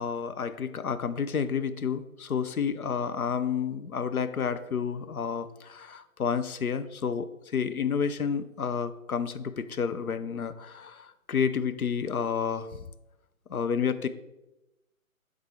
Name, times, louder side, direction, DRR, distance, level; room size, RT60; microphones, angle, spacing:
voice 1, 0.0-12.8 13.5-14.1, left 6 dB, 85° left, 11 dB, 0.6 m, -30 dB
9.3 x 3.6 x 3.3 m, 0.96 s
figure-of-eight pair, 140°, 42 cm